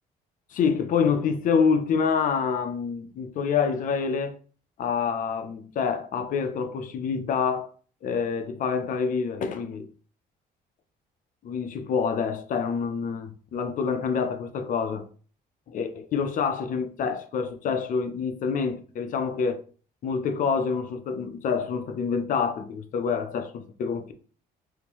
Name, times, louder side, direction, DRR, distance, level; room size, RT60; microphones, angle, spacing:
voice 1, 0.5-4.4 4.8-7.7 8.0-9.9 11.4-15.1 15.7-19.6 20.0-24.1, left 6 dB, 50° left, 0.5 m, -27 dB
3.6 x 2.6 x 2.9 m
cardioid pair, 110°, 17 cm